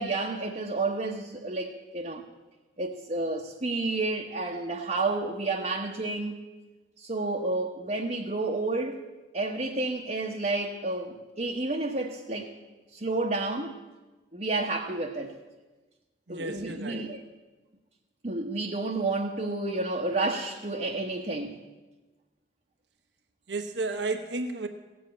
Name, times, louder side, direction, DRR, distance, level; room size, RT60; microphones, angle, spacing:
voice 1, 0.0-2.2 2.8-6.4 7.0-9.0 9.3-12.5 12.9-13.8 14.3-15.3 16.3-17.2 18.2-21.6, right 2 dB, 40° right, 0 dB, 1.0 m, -30 dB
voice 2, 16.3-17.1 23.5-24.7, right 3 dB, 80° right, 6 dB, 1.1 m, -32 dB
16.5 x 7.9 x 8.7 m, 1.2 s
head